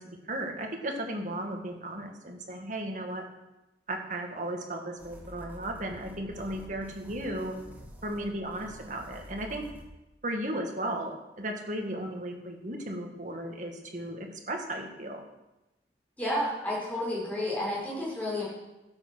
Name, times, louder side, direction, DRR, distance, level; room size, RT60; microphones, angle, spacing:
voice 1, 0.0-3.2 3.9-7.6 8.0-9.7 10.2-15.2, right 1 dB, 45° right, 2 dB, 1.9 m, -35 dB
sound 1, 5.0-9.9, equal, 10° right, 1.5 m, -48 dB
voice 2, 16.2-18.5, left 1 dB, 10° left, -6 dB, 5.5 m, -31 dB
12.5 x 8.1 x 6.3 m, 1.0 s
head